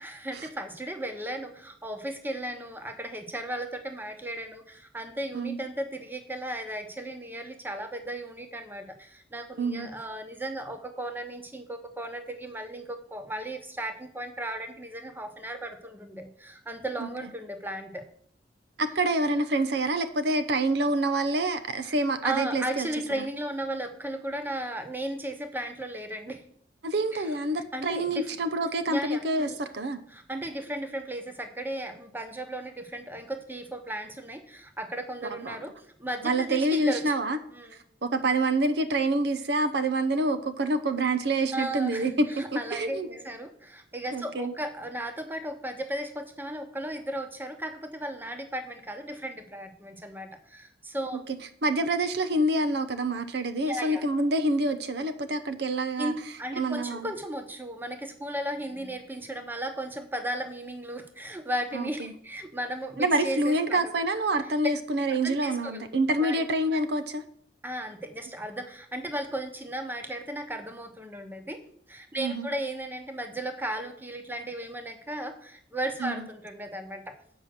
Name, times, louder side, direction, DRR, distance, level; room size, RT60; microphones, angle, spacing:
voice 1, 0.0-18.0 22.2-26.4 27.1-28.4 28.9-29.6 30.1-35.7 36.0-37.2 37.5-37.8 41.5-51.2 53.6-54.1 56.0-63.8 65.1-65.9 66.2-66.4 67.6-71.6 71.9-77.1, right 1 dB, 10° right, 6 dB, 1.0 m, -35 dB
voice 2, 18.8-22.9 26.8-30.0 35.4-35.6 36.2-37.4 38.0-42.3 42.5-43.1 44.1-44.5 51.6-56.1 56.5-57.1 61.7-62.1 63.0-67.2 72.2-72.5 76.0-76.1, right 2 dB, 65° right, 9 dB, 0.6 m, -27 dB
7.9 x 5.7 x 6.6 m, 0.62 s
head